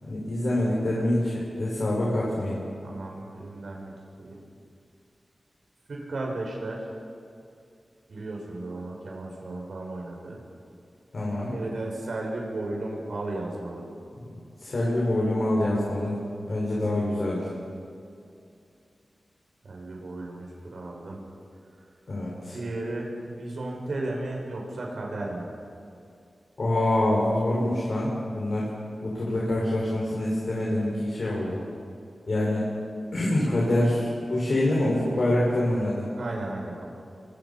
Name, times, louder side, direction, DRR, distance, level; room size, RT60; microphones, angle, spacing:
voice 1, 0.0-2.6 11.1-11.5 14.3-16.2 16.5-17.5 22.1-22.5 26.6-28.7 29.0-31.6 32.3-32.6 33.1-36.1, left 1 dB, 55° left, -5 dB, 6.1 m, -25 dB
voice 2, 2.8-3.9 4.2-4.4 5.9-6.8 8.1-10.4 11.4-13.8 19.6-21.2 22.5-25.5 36.2-36.9, right 2 dB, 75° right, -1 dB, 6.1 m, -34 dB
27.0 x 25.0 x 5.9 m, 2.5 s
wide cardioid pair, 115°, 0 cm